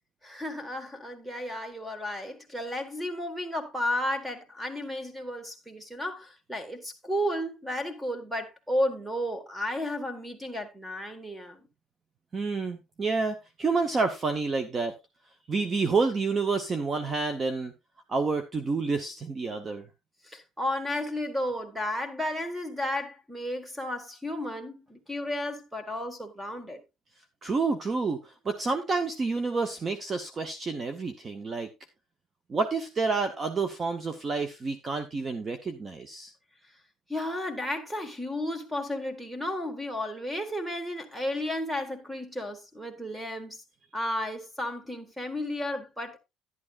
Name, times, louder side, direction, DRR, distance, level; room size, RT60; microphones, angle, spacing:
voice 1, 0.2-11.7 20.2-26.8 37.1-43.6 43.9-46.2, left 1 dB, 5° right, 1.6 m, -33 dB
voice 2, 12.3-14.9 15.5-17.7 18.1-19.9 27.4-31.7 32.5-36.3, right 4 dB, 25° right, 0.8 m, -29 dB
11.0 x 11.0 x 2.4 m
cardioid pair, 150°, 0 cm